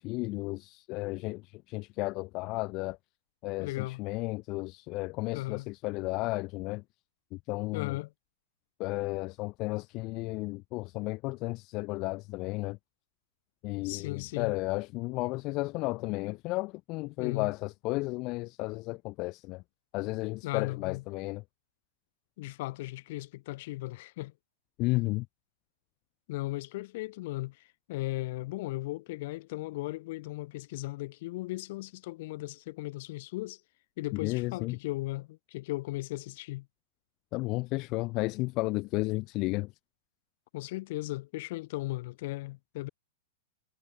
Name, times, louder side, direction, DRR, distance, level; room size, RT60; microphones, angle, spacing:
voice 1, 0.0-3.0 3.4-6.8 7.5-8.0 8.8-12.8 13.6-19.6 19.9-21.4 24.8-25.3 34.1-34.8 37.3-39.7, left 23 dB, 40° left, 0.4 m, -33 dB
voice 2, 3.6-4.0 5.3-5.7 7.7-8.1 13.8-14.5 17.2-17.5 20.4-21.0 22.4-24.3 26.3-27.6 27.9-33.6 34.0-36.7 40.5-42.9, left 19 dB, 55° left, 1.2 m, -37 dB
hypercardioid pair, 135°, 0 cm